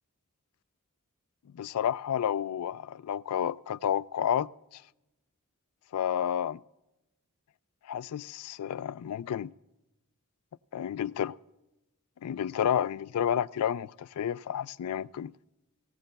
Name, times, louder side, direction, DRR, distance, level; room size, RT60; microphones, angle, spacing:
voice 1, 1.5-4.8 5.9-6.6 7.9-9.5 10.7-11.3 12.2-15.3, left 9 dB, 85° left, 0.3 m, -30 dB
18.5 x 17.0 x 2.2 m
head